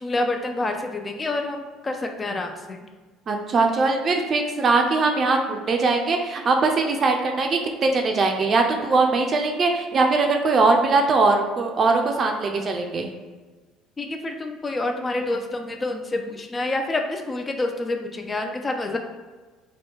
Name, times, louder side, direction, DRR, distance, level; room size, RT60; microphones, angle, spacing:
voice 1, 0.0-2.8 14.0-19.0, left 2 dB, 25° left, 4 dB, 0.4 m, -28 dB
voice 2, 3.3-13.1, right 3 dB, 45° right, 3 dB, 0.5 m, -21 dB
3.0 x 2.2 x 3.4 m, 1.3 s
hypercardioid pair, 60°, 0 cm